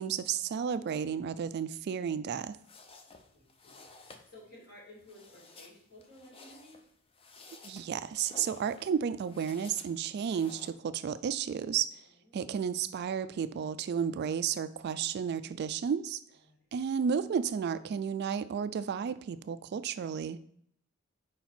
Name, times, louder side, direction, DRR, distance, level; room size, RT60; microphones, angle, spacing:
voice 1, 0.0-2.6 7.6-12.0 12.3-16.2 16.7-20.4, right 7 dB, 50° right, 14 dB, 0.3 m, -32 dB
sound 1, 2.3-10.7, left 3 dB, 25° left, 0.6 m, -54 dB
voice 2, 3.3-6.8 12.1-12.5 16.4-16.7, left 1 dB, 50° left, -4 dB, 2.7 m, -55 dB
4.9 x 4.3 x 5.7 m, 0.67 s
head